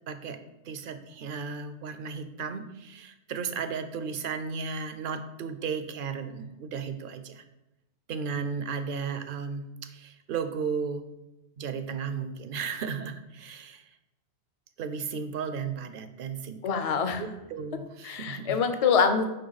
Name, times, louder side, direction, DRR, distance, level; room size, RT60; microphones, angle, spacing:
voice 1, 0.1-0.4 0.6-7.4 8.1-11.0 11.6-14.0 14.8-16.6 17.2-18.6, right 6 dB, 60° right, 10 dB, 0.6 m, -35 dB
voice 2, 16.6-17.2 18.0-19.2, left 6 dB, 45° left, 8 dB, 0.5 m, -25 dB
9.1 x 3.3 x 4.0 m, 0.94 s
omnidirectional pair, 1.2 m